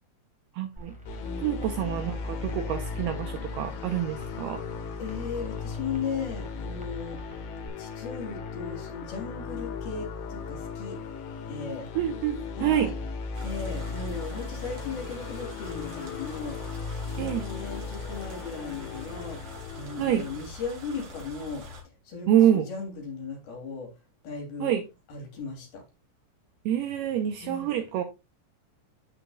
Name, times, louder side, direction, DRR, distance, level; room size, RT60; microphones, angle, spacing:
voice 1, 0.5-0.9 1.4-4.6 12.0-12.9 17.2-17.5 20.0-20.2 22.3-22.7 24.6-24.8 26.7-28.0, right 10 dB, 80° right, 2.4 m, -26 dB
sound 1, 0.8-7.7, left 1 dB, 5° right, 1.0 m, -48 dB
sound 2, 1.1-20.5, left 4 dB, 75° left, 3.7 m, -37 dB
voice 2, 1.2-1.6 5.0-7.2 7.8-11.0 11.4-11.9 12.6-12.9 13.4-16.7 17.1-19.4 19.7-21.6 22.0-23.9 24.2-24.7 25.1-25.8 27.4-27.7, left 5 dB, 55° left, 4.6 m, -37 dB
sound 3, 13.3-21.8, equal, 45° right, 3.7 m, -45 dB
14.0 x 5.1 x 2.4 m
omnidirectional pair, 5.3 m